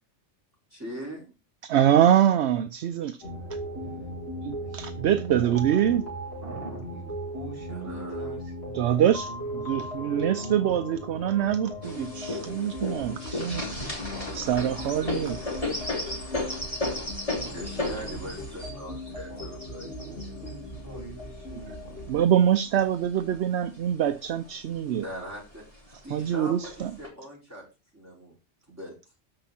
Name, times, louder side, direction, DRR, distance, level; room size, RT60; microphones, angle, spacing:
voice 1, 0.7-1.3 7.7-8.4 13.5-15.5 17.5-20.5 25.0-25.6 26.0-27.7 27.9-28.3 28.7-28.9, equal, 15° right, 5.2 m, -42 dB
voice 2, 1.6-3.4 4.4-6.0 8.7-13.6 14.3-15.4 22.1-25.0 26.1-26.9, right 10 dB, 70° right, 0.9 m, -24 dB
sound 1, 3.2-22.1, equal, 65° left, 3.0 m, -38 dB
voice 3, 3.7-4.1 4.5-6.0 6.4-10.9 17.4-18.9 19.3-22.1, right 3 dB, 50° right, 3.1 m, -44 dB
sound 2, 11.8-22.1 22.7-23.7 24.1-24.2 24.5-25.2 25.9-26.0 26.6-27.1, left 2 dB, 30° left, 3.2 m, -34 dB
13.0 x 5.0 x 4.3 m
omnidirectional pair, 1.2 m